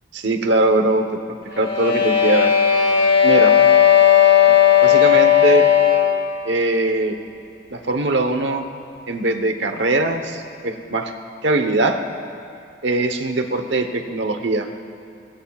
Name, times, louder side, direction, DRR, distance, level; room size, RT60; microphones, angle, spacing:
voice 1, 0.1-1.1 1.6-2.5 3.2-3.5 4.5-4.6 4.8-5.7 6.4-7.2 7.7-8.6 9.1-11.1 11.4-12.0 12.8-14.7, right 2 dB, 85° right, 6 dB, 1.0 m, -21 dB
sound 1, 1.5-6.2, left 9 dB, 50° left, 4.1 m, -14 dB
22.0 x 20.5 x 2.4 m, 2.4 s
head